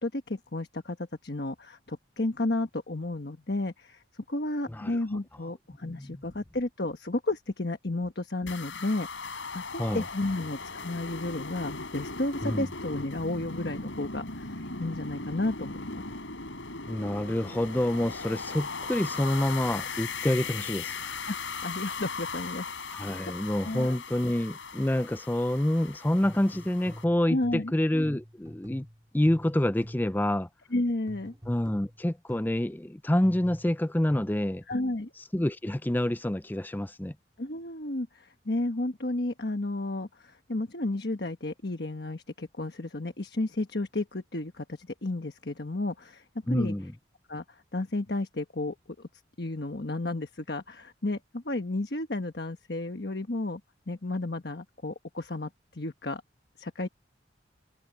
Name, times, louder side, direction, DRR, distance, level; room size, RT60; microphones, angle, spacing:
voice 1, 0.0-16.0 21.2-21.4 21.6-22.7 23.0-23.3 23.6-24.0 27.3-27.7 30.7-31.3 34.7-35.1 37.4-46.7 47.3-49.1 49.4-53.6 53.9-56.2 56.6-56.9, left 2 dB, 60° left, 1.3 m, -32 dB
voice 2, 5.8-6.2 9.8-10.0 12.4-12.7 16.9-21.2 22.9-28.9 29.1-30.5 31.5-34.6 35.3-37.1 46.5-46.9, left 1 dB, 10° left, 0.5 m, -27 dB
sound 1, 8.5-27.0, left 4 dB, 85° left, 8.0 m, -38 dB
sound 2, 26.2-30.3 31.1-32.7 33.2-34.8, equal, 20° right, 5.2 m, -47 dB
head